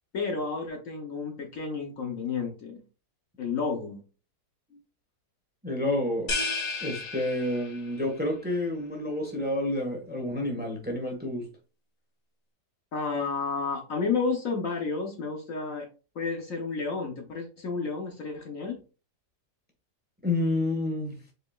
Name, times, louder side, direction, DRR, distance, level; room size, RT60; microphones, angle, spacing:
voice 1, 0.1-2.8 3.4-4.0 12.9-15.9 16.1-18.8, left 4 dB, 55° left, 1.2 m, -31 dB
voice 2, 5.6-6.3 6.8-11.5 20.2-21.2, left 1 dB, 5° right, 1.4 m, -29 dB
sound 1, 6.3-8.0, left 3 dB, 90° left, 2.1 m, -32 dB
4.9 x 4.6 x 2.4 m
omnidirectional pair, 1.8 m